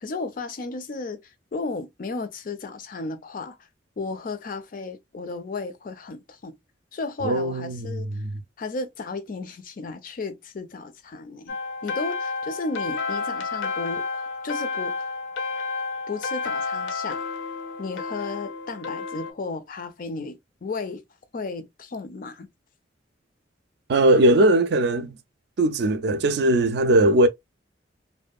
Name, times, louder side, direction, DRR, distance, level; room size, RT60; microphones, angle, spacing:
voice 1, 0.0-3.6 4.0-6.6 6.9-8.1 8.6-11.6 11.8-15.1 16.1-17.3 17.8-21.0 21.3-22.5, left 3 dB, 45° left, 0.4 m, -34 dB
voice 2, 7.2-8.4 23.9-25.2 25.6-27.3, right 1 dB, 60° right, 0.4 m, -20 dB
sound 1, 11.5-19.3, left 4 dB, 85° left, 0.7 m, -31 dB
2.6 x 2.4 x 2.2 m
head